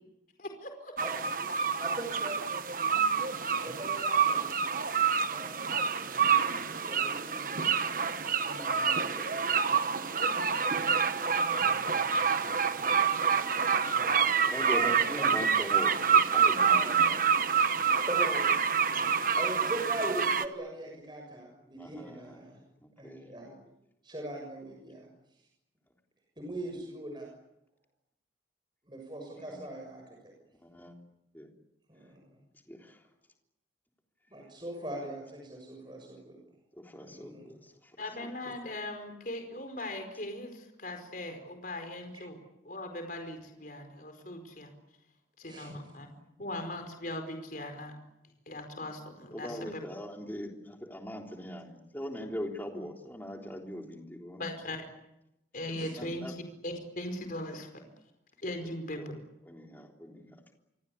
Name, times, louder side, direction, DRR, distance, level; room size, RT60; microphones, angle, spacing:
voice 1, 0.4-0.9 10.1-10.6 38.0-42.4 42.6-44.7 45.4-46.1 46.4-47.9 48.5-49.8 54.4-54.8 55.5-57.7 58.4-59.1, left 1 dB, 45° left, 5 dB, 4.9 m, -39 dB
sound 1, 1.0-20.5, right 6 dB, 45° right, 1.3 m, -27 dB
voice 2, 1.8-2.4 3.6-4.5 5.3-5.6 6.9-7.7 8.4-9.2 11.5-12.2 13.9-14.2 14.6-15.3 18.1-18.5 19.3-22.6 23.0-23.6 24.0-25.1 26.4-27.3 28.8-30.2 31.9-32.4 34.3-36.4 37.0-37.6 38.4-38.5 45.4-45.8 46.2-46.3 55.7-55.9 60.1-60.2, right 1 dB, 25° right, 1 dB, 6.6 m, -41 dB
voice 3, 14.4-17.2 17.6-17.7 18.9-19.2 21.8-22.4 23.0-23.3 29.5-29.6 30.6-30.9 31.3-31.5 32.7-32.9 36.8-37.6 49.3-54.4 55.8-56.3 59.0-59.1 59.5-60.2, equal, 10° left, 1 dB, 3.6 m, -41 dB
28.5 x 24.5 x 8.6 m, 0.87 s
head